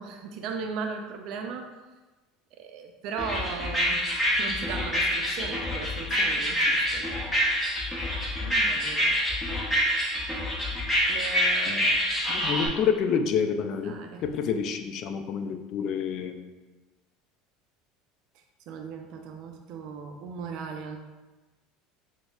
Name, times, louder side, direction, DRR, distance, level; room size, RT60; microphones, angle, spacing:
voice 1, 0.0-1.7 2.5-4.0 4.4-7.2 7.5-7.7 8.4-9.2 11.1-12.0 12.4-12.9 13.8-14.2 18.7-21.0, right 5 dB, 60° right, 4 dB, 0.4 m, -37 dB
sound 1, 3.2-12.7, equal, 20° left, 0.8 m, -26 dB
voice 2, 12.3-14.0 14.2-16.4, left 7 dB, 55° left, 7 dB, 0.3 m, -28 dB
5.9 x 2.1 x 2.3 m, 1.2 s
hypercardioid pair, 85°, 0 cm